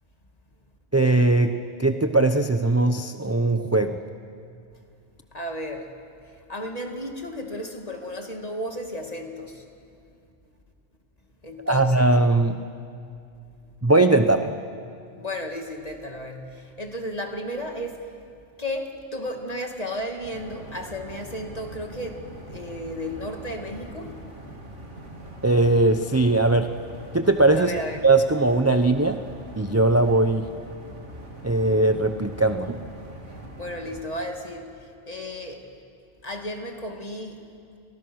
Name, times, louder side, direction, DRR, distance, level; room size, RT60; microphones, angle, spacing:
voice 1, 0.9-1.5 1.8-4.0 11.7-12.6 13.8-14.5 25.4-26.7 27.1-27.7 28.0-29.2 29.6-30.5 31.4-32.8, right 2 dB, 15° right, 7 dB, 0.7 m, -20 dB
voice 2, 5.3-5.9 6.5-9.6 11.4-12.1 15.2-18.0 18.6-24.1 27.5-28.0 33.6-34.7 35.1-35.6 36.2-37.4, equal, 35° left, 3 dB, 2.5 m, -33 dB
sound 1, 20.2-34.0, right 1 dB, 90° right, 3.7 m, -42 dB
30.0 x 24.0 x 6.4 m, 2.4 s
omnidirectional pair, 1.2 m